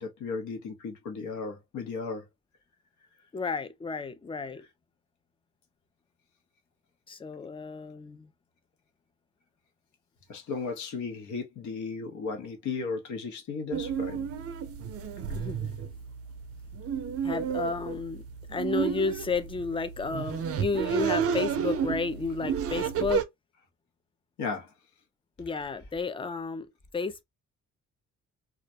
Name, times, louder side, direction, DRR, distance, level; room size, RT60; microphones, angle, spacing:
voice 1, 0.0-2.2 10.3-14.3 24.4-24.7, left 4 dB, 70° left, 0.8 m, -35 dB
voice 2, 3.3-4.7 7.1-8.3 15.3-15.7 17.2-18.2 18.5-23.3 25.4-27.2, left 4 dB, 20° left, 0.4 m, -32 dB
sound 1, 13.7-23.2, right 7 dB, 50° right, 0.5 m, -32 dB
2.3 x 2.1 x 2.6 m
cardioid pair, 90°, 30 cm